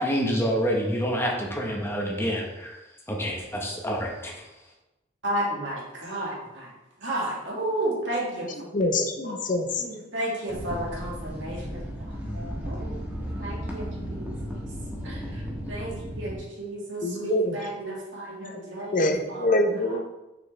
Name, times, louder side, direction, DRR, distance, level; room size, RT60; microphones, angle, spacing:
voice 1, 0.0-2.8 3.1-4.3, equal, 15° left, 0 dB, 1.0 m, -27 dB
voice 2, 5.2-6.7 7.0-8.5 9.2-9.3 9.8-12.9 13.2-14.6 15.0-15.2 15.7-19.6, right 1 dB, 85° right, -4 dB, 2.1 m, -33 dB
voice 3, 8.5-9.8 17.0-17.7 18.5-18.6 18.9-20.0, left 1 dB, 45° left, 6 dB, 0.7 m, -25 dB
sound 1, 10.5-16.4, equal, 10° right, 1.2 m, -34 dB
6.6 x 5.9 x 3.3 m, 1.0 s
head